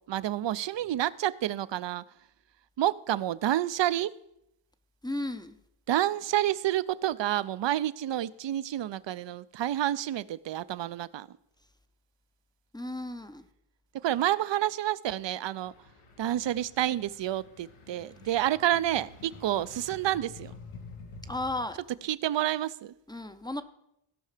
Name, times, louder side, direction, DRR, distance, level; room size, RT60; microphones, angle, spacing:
voice 1, 0.1-2.0 2.8-4.1 5.9-11.4 14.0-15.7 16.2-20.5 22.0-22.9, right 12 dB, 60° right, 17 dB, 0.5 m, -29 dB
voice 2, 5.0-5.5 12.7-13.4 21.3-21.8 23.1-23.6, left 1 dB, 10° left, 10 dB, 0.6 m, -34 dB
sound 1, 15.7-21.7, left 4 dB, 85° left, 1.4 m, -49 dB
16.5 x 5.6 x 4.9 m, 0.80 s
wide cardioid pair, 90°, 49 cm